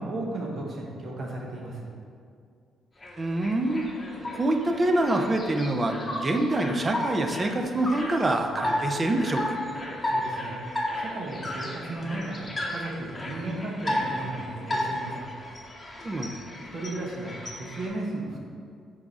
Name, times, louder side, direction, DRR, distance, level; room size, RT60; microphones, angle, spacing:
voice 1, 0.0-1.9 10.0-10.6 11.0-15.3 16.7-18.4, right 2 dB, 55° right, -2 dB, 1.0 m, -35 dB
sound 1, 3.0-17.9, left 1 dB, 20° left, 1.0 m, -34 dB
voice 2, 3.2-3.9 4.3-9.6 16.0-16.3, right 1 dB, 30° right, 5 dB, 0.6 m, -25 dB
4.8 x 3.7 x 5.4 m, 2.3 s
cardioid pair, 90°, 0 cm